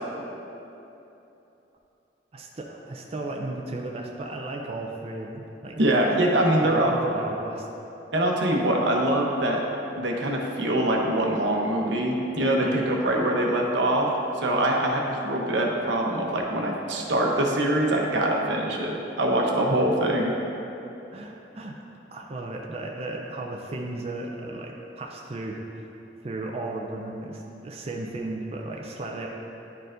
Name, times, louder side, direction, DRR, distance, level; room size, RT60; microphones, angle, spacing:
voice 1, 2.3-5.8 6.6-7.7 12.6-13.0 21.1-21.7 22.1-25.9 26.2-29.3, right 2 dB, 35° right, 0 dB, 0.4 m, -35 dB
voice 2, 5.7-6.9 8.1-9.6 10.0-14.1 14.4-20.3, right 1 dB, 85° right, 0 dB, 0.9 m, -24 dB
10.5 x 4.6 x 2.5 m, 2.9 s
head